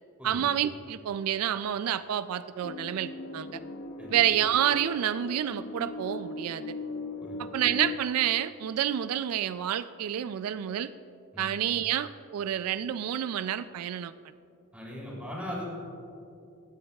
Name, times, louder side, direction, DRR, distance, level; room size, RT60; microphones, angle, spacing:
voice 1, 0.2-3.6 4.1-6.7 7.4-10.9 11.4-14.1, right 10 dB, 85° right, 13 dB, 0.3 m, -29 dB
sound 1, 2.6-8.0, left 2 dB, 60° left, 0.7 m, -39 dB
voice 2, 14.7-15.6, equal, 5° right, -4 dB, 3.1 m, -39 dB
18.0 x 13.5 x 2.4 m, 2.6 s
head